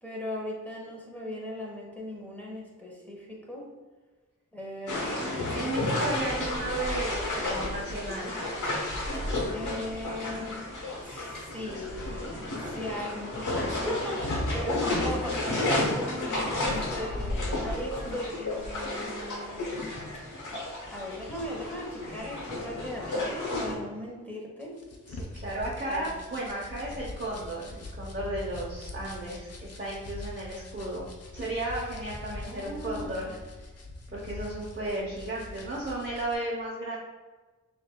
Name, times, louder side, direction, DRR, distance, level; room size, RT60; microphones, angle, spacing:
voice 1, 0.0-3.7 4.5-5.9 9.5-10.7 11.0-20.0 20.9-24.8 25.8-26.2 32.3-33.3, left 1 dB, 5° left, -3 dB, 1.1 m, -38 dB
sound 1, 4.9-23.7, left 2 dB, 80° left, 1.0 m, -32 dB
voice 2, 5.5-8.5 25.1-31.1 31.3-33.4 34.1-37.0, right 1 dB, 35° right, -5 dB, 0.9 m, -34 dB
sound 2, 24.6-36.3, left 2 dB, 55° left, 0.7 m, -43 dB
6.0 x 2.6 x 2.3 m, 1.3 s
wide cardioid pair, 60°, 30 cm